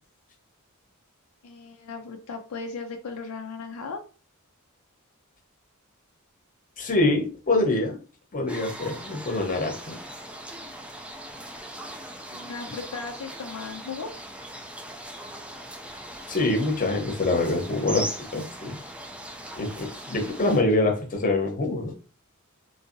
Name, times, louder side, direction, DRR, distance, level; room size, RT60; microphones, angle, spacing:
voice 1, 1.4-4.0 12.3-14.1, left 4 dB, 70° left, 4 dB, 0.5 m, -36 dB
voice 2, 6.8-8.0 8.3-10.0 16.3-18.8 19.6-21.9, left 2 dB, 35° left, 2 dB, 0.8 m, -25 dB
sound 1, 8.5-20.6, right 1 dB, 5° right, 0.3 m, -40 dB
3.7 x 2.7 x 2.5 m, 0.36 s
head